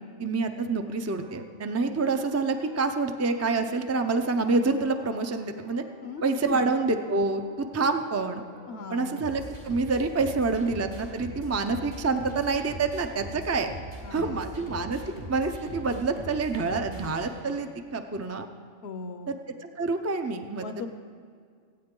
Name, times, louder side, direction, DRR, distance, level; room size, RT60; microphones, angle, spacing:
voice 1, 0.2-5.8 6.2-8.4 8.9-13.7 14.1-18.5 19.3-20.7, right 3 dB, 20° right, 6 dB, 0.4 m, -27 dB
sound 1, 1.2-17.8, equal, 75° right, 3.5 m, -43 dB
voice 2, 6.0-6.7 8.7-9.2 14.0-14.6 18.8-19.4 20.6-20.9, left 4 dB, 65° left, 9 dB, 0.9 m, -39 dB
24.0 x 8.8 x 3.8 m, 2.1 s
omnidirectional pair, 1.2 m